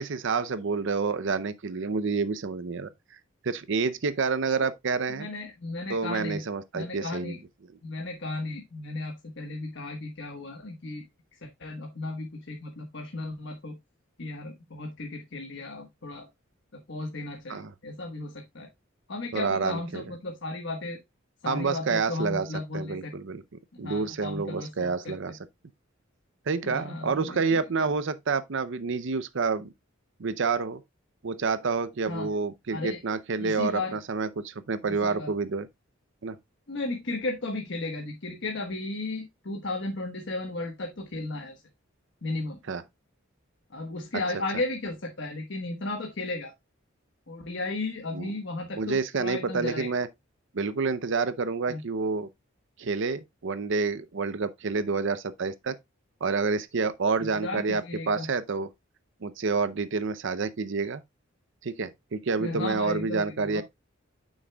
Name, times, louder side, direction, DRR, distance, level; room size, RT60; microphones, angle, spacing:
voice 1, 0.0-2.9 3.4-5.3 5.9-7.3 17.5-17.7 19.3-20.0 21.5-22.5 22.7-23.4 23.8-25.4 26.5-29.7 30.2-30.8 31.2-35.7 36.2-36.4 42.7-42.8 48.1-48.3 48.7-50.1 50.5-52.3 52.8-55.8 56.2-58.7 59.2-61.0 61.6-63.6, right 4 dB, 65° right, 0.6 m, -28 dB
voice 2, 5.2-6.4 6.7-7.4 7.8-11.0 11.4-13.7 14.2-16.3 16.7-18.7 19.1-21.0 21.4-23.1 23.8-25.1 26.6-27.6 32.1-32.3 32.7-33.0 33.4-34.0 34.9-35.3 36.7-41.6 42.2-42.6 43.7-46.5 47.3-49.9 51.7-51.8 57.4-58.3 62.4-63.6, left 2 dB, 60° left, 1.3 m, -35 dB
9.4 x 6.3 x 2.2 m
head